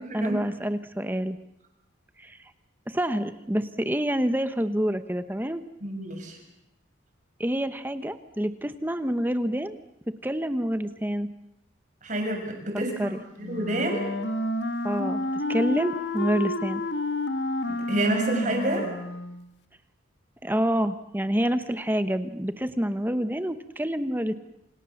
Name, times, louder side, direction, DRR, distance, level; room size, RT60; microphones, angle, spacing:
voice 1, 0.1-1.4 2.2-2.4 2.9-5.6 7.4-9.8 10.2-11.3 13.0-13.2 14.8-16.8 20.4-24.3, equal, 10° right, 11 dB, 1.0 m, -27 dB
voice 2, 5.8-6.4 12.0-14.1 17.7-18.9, right 1 dB, 40° right, 3 dB, 6.8 m, -29 dB
Wind instrument woodwind instrument, 13.4-19.4, left 1 dB, 60° left, 2.1 m, -30 dB
29.5 x 27.0 x 7.2 m, 0.82 s
head